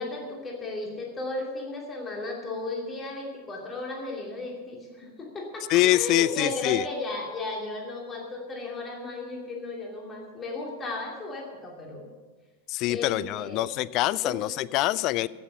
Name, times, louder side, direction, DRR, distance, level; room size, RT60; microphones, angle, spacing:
voice 1, 0.0-12.1 12.9-13.8 14.2-14.4, left 2 dB, 20° left, 0 dB, 2.6 m, -35 dB
voice 2, 5.7-6.8 12.7-15.3, left 16 dB, 40° left, 20 dB, 0.3 m, -24 dB
15.5 x 7.3 x 6.8 m, 1.3 s
figure-of-eight pair, 90°, 0 cm